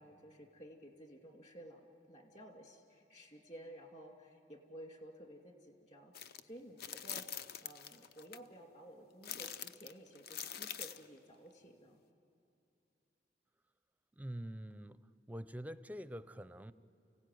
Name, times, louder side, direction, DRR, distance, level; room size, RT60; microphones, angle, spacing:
voice 1, 0.0-7.3 7.6-12.0, right 1 dB, 40° left, 3 dB, 2.5 m, -54 dB
sound 1, 6.1-6.4 6.8-8.4 9.2-11.1, left 8 dB, 60° left, 0.6 m, -44 dB
voice 2, 14.1-15.0 15.3-16.7, equal, 10° right, 14 dB, 0.5 m, -45 dB
29.5 x 16.5 x 9.3 m, 2.6 s
head